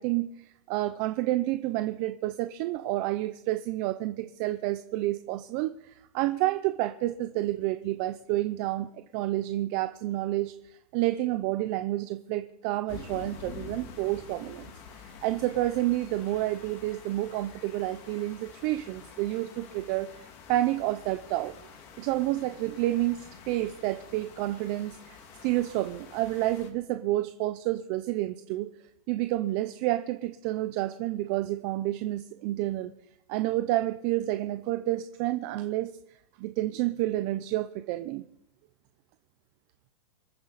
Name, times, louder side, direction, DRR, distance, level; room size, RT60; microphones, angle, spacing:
voice 1, 0.0-14.7 15.2-21.5 22.0-28.7 29.1-32.9 33.3-35.9 36.4-38.2, right 16 dB, 30° right, 9 dB, 0.5 m, -29 dB
sound 1, 12.9-26.7, left 6 dB, 30° left, 2.1 m, -48 dB
26.5 x 9.3 x 4.0 m, 0.79 s
hypercardioid pair, 160°, 20 cm